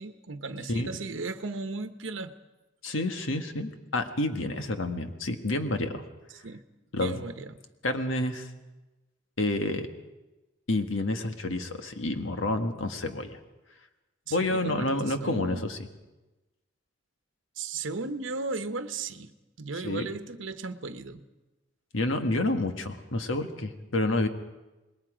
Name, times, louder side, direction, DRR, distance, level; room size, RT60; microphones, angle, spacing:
voice 1, 0.0-2.3 6.4-6.6 7.0-7.5 14.3-15.7 17.6-21.2, right 3 dB, 75° right, 9 dB, 1.0 m, -36 dB
voice 2, 2.8-6.0 6.9-7.2 7.8-8.5 9.4-9.9 10.7-13.4 14.3-15.8 19.8-20.2 21.9-24.3, left 2 dB, 85° left, 6 dB, 1.5 m, -29 dB
26.5 x 21.0 x 5.1 m, 1.1 s
head